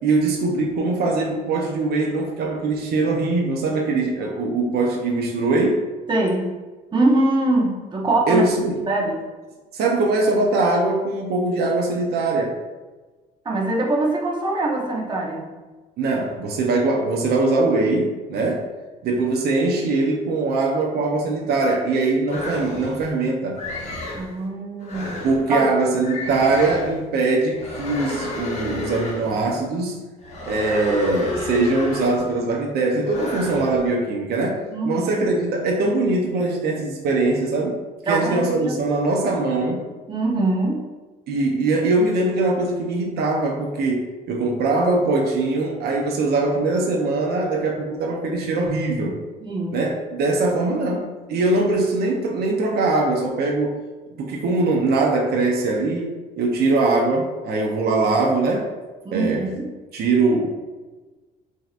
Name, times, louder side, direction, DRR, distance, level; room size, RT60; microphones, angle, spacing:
voice 1, 0.0-5.8 8.3-8.8 9.7-12.5 16.0-18.7 19.0-23.6 25.2-30.0 30.4-37.8 38.1-39.8 41.3-49.1 49.7-53.7 54.2-58.7 59.1-59.5 59.9-60.5, right 2 dB, 70° right, 0 dB, 0.8 m, -22 dB
voice 2, 6.1-6.5 6.9-8.4 8.9-9.2 13.4-15.5 24.1-25.6 34.7-35.3 38.1-38.8 40.1-40.8 49.4-49.8 59.0-59.7, right 2 dB, 25° right, -2 dB, 1.0 m, -23 dB
sound 1, 22.3-23.1 23.6-24.3 24.8-25.5 26.0-27.0 27.5-29.5 30.2-32.4 33.0-33.8, left 2 dB, 40° left, 1.1 m, -31 dB
6.0 x 2.9 x 2.5 m, 1.3 s
cardioid pair, 110°, 17 cm